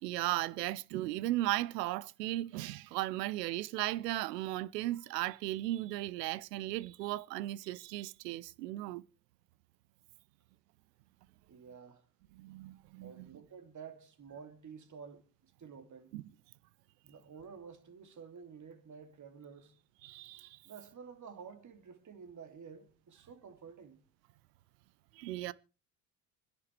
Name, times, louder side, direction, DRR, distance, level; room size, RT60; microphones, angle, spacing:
voice 1, 0.0-9.0 12.3-13.3 16.1-16.2 20.0-20.6 25.1-25.5, right 16 dB, 75° right, 0.7 m, -36 dB
voice 2, 11.5-12.1 13.0-16.1 17.0-19.7 20.6-24.0, right 6 dB, 35° right, 2.5 m, -51 dB
26.0 x 10.5 x 3.2 m
hypercardioid pair, 60°, 49 cm